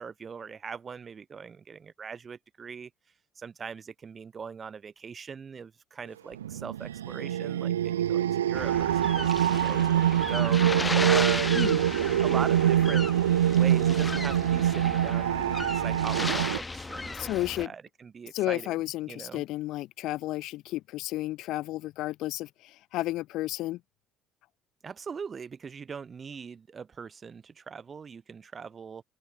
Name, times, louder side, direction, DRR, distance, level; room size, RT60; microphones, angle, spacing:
voice 1, 0.0-2.9 3.4-11.9 12.2-13.1 13.5-18.7 19.1-19.4 24.8-29.0, right 6 dB, 35° right, 6.0 m, -40 dB
sound 1, 6.4-16.6, right 11 dB, 80° right, 0.7 m, -25 dB
sound 2, 8.6-17.7, left 3 dB, 20° left, 3.2 m, -35 dB
voice 2, 17.2-17.7 18.3-23.8, left 16 dB, 60° left, 3.2 m, -32 dB
open air
figure-of-eight pair, 55°, 0 cm